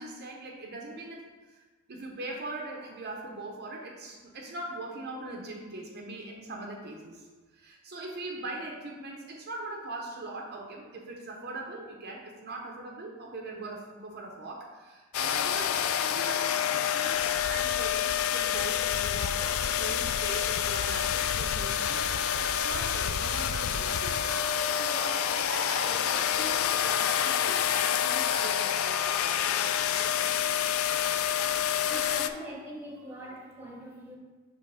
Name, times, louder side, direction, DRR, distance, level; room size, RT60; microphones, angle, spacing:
voice 1, 0.0-1.6 1.9-7.3 7.5-22.1 22.4-24.5 24.7-29.4 30.0-30.4, right 2 dB, 50° right, 0 dB, 0.7 m, -41 dB
sound 1, 15.1-32.3, left 9 dB, 85° left, 0.3 m, -28 dB
voice 2, 31.8-34.2, right 1 dB, 10° right, -2 dB, 1.1 m, -42 dB
5.4 x 3.3 x 5.6 m, 1.3 s
head